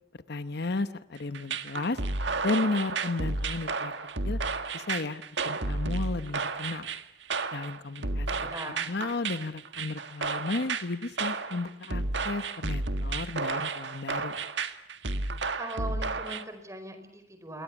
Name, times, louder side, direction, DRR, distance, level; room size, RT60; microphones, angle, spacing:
voice 1, 0.3-2.0 2.4-3.9 4.2-4.4 4.7-6.9 7.5-8.5 8.9-14.4, left 3 dB, 60° left, 12 dB, 1.0 m, -33 dB
sound 1, 1.3-16.4, right 3 dB, 70° right, 1.7 m, -32 dB
voice 2, 8.0-8.9 15.6-17.6, right 1 dB, 15° right, 7 dB, 4.6 m, -40 dB
27.0 x 22.5 x 7.2 m, 0.72 s
head